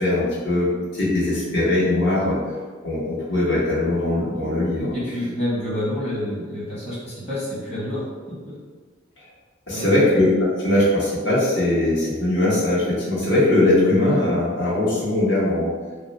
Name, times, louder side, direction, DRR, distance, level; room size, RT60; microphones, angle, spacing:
voice 1, 0.0-2.4 2.8-4.9 9.2-9.3 9.7-10.3 10.6-15.7, left 1 dB, 65° left, -8 dB, 1.2 m, -20 dB
voice 2, 4.9-8.0 8.4-8.5 9.7-9.9, left 1 dB, 30° left, -8 dB, 1.1 m, -28 dB
2.6 x 2.1 x 4.0 m, 1.4 s
head